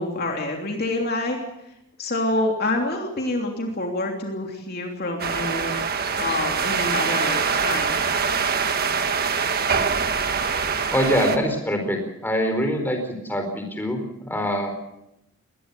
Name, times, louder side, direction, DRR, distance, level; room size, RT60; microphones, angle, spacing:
voice 1, 0.0-1.4 2.0-5.7 6.2-8.0, left 2 dB, 45° left, 2 dB, 3.1 m, -27 dB
sound 1, 5.2-11.4, right 5 dB, 45° right, 1.7 m, -24 dB
voice 2, 10.9-14.7, equal, 10° left, 4 dB, 4.5 m, -24 dB
22.0 x 20.0 x 6.9 m, 0.84 s
head